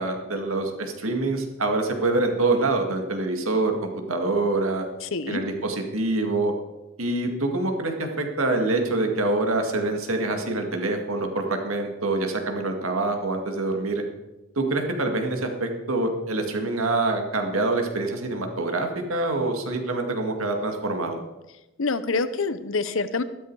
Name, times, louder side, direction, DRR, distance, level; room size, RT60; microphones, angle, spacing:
voice 1, 0.0-4.9 5.3-6.5 7.0-14.0 14.6-21.2, right 2 dB, 85° right, 4 dB, 2.1 m, -25 dB
voice 2, 5.0-5.4 21.8-23.2, left 3 dB, 70° left, 13 dB, 0.8 m, -26 dB
13.5 x 12.5 x 4.8 m, 1.0 s
head